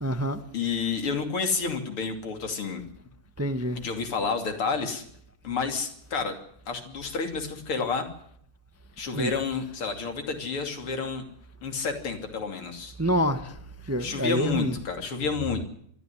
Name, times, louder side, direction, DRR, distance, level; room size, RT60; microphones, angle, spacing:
voice 1, 0.0-0.4 3.4-3.8 9.1-9.3 13.0-13.5 13.9-14.7, equal, 10° right, 0.9 m, -26 dB
voice 2, 0.5-2.8 3.8-5.0 5.4-6.4 6.7-8.1 9.0-11.2 11.6-12.9 14.0-15.7, left 5 dB, 75° left, 3.7 m, -30 dB
23.5 x 14.0 x 9.9 m
omnidirectional pair, 2.4 m